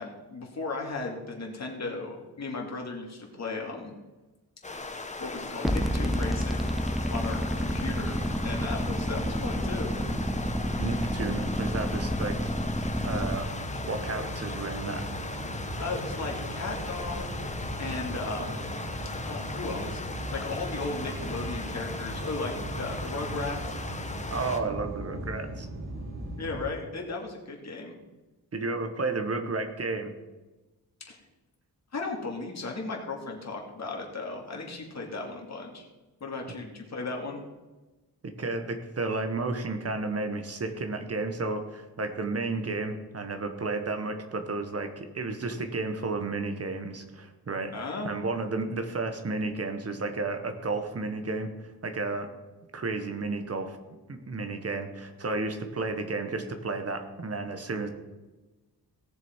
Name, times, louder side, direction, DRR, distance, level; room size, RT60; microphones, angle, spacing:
voice 1, 0.0-3.9 5.2-6.7 7.1-10.0 15.8-17.4 17.8-18.6 19.2-23.8 26.4-28.0 31.1-31.2 31.9-35.9 36.2-37.4 47.7-48.2, left 3 dB, 45° left, 0 dB, 2.5 m, -36 dB
sound 1, 4.6-24.6, left 3 dB, 20° left, 1.0 m, -38 dB
sound 2, 5.6-13.4, equal, ahead, 0.4 m, -30 dB
sound 3, 7.5-26.6, right 1 dB, 75° right, 2.8 m, -38 dB
voice 2, 10.8-12.5 13.0-13.5 13.9-15.1 17.9-18.0 24.3-25.7 28.5-30.1 38.2-47.7 48.0-52.3 52.7-53.8 54.1-57.9, right 3 dB, 40° right, 7 dB, 1.4 m, -32 dB
18.0 x 6.9 x 4.6 m, 1.2 s
wide cardioid pair, 135°, 37 cm